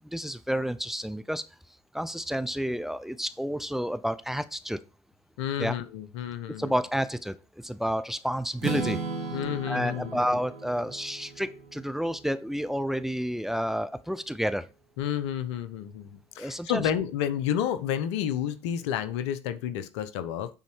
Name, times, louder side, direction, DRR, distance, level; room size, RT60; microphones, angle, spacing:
voice 1, 0.0-1.5 1.9-4.8 5.6-5.8 6.6-9.0 9.7-14.7 16.4-16.8, equal, ahead, 13 dB, 0.7 m, -30 dB
voice 2, 5.4-6.7 9.3-10.2 15.0-20.5, left 9 dB, 85° left, 12 dB, 0.9 m, -30 dB
Strum, 8.6-12.5, right 4 dB, 85° right, 1.9 m, -36 dB
9.4 x 4.3 x 4.6 m, 0.30 s
hypercardioid pair, 70°, 14 cm